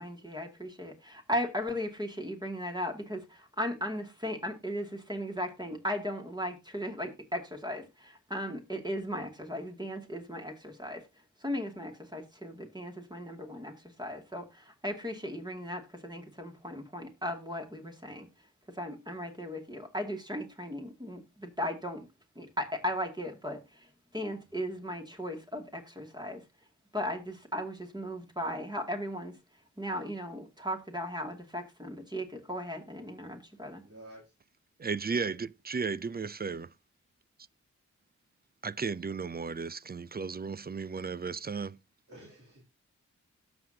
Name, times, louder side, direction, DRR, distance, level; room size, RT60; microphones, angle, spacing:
voice 1, 0.0-22.1 22.4-26.5 26.9-33.8, equal, 15° right, 2.4 m, -37 dB
voice 2, 33.8-34.3 42.1-42.6, right 1 dB, 50° right, 3.1 m, -52 dB
voice 3, 34.8-36.7 38.6-41.8, right 5 dB, 30° right, 0.5 m, -34 dB
17.5 x 6.1 x 2.8 m
cardioid pair, 45°, 30 cm